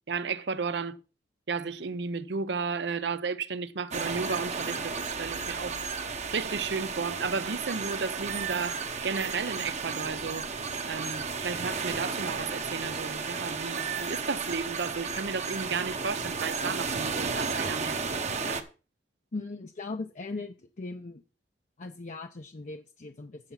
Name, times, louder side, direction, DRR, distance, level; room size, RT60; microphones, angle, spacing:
voice 1, 0.1-1.0 1.5-5.8 6.3-10.5 10.9-18.0 18.3-18.6, right 5 dB, 75° right, 0.7 m, -33 dB
sound 1, 3.9-18.6, right 5 dB, 40° right, 1.0 m, -33 dB
voice 2, 19.3-21.2 21.8-23.5, left 3 dB, 45° left, 0.6 m, -39 dB
9.0 x 7.0 x 5.6 m
head